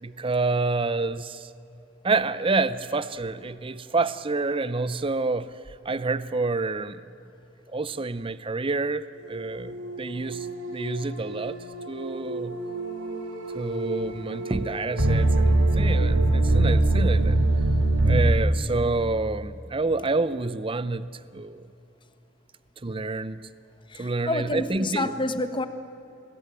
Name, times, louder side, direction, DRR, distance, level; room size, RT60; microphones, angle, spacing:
voice 1, 0.0-1.5 2.0-5.6 5.8-7.0 7.7-11.6 11.9-12.6 13.5-17.4 18.0-21.6 22.8-23.5 24.0-25.1, right 3 dB, 25° right, 0.6 m, -28 dB
sound 1, 9.3-18.3, right 2 dB, 80° right, 3.9 m, -24 dB
voice 2, 23.9-25.7, left 2 dB, 25° left, 1.4 m, -28 dB
27.5 x 21.0 x 9.1 m
head